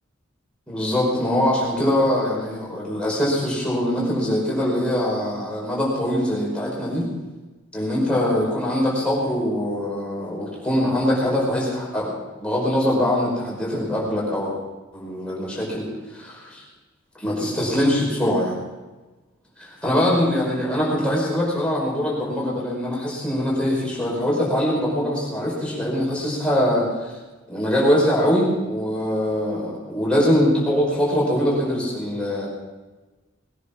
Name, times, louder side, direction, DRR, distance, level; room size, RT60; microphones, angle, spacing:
voice 1, 0.7-7.1 7.7-14.5 14.9-15.9 16.1-16.6 17.2-18.6 19.6-27.1 27.5-32.5, equal, 5° left, -5 dB, 5.2 m, -23 dB
20.5 x 10.0 x 6.0 m, 1.2 s
head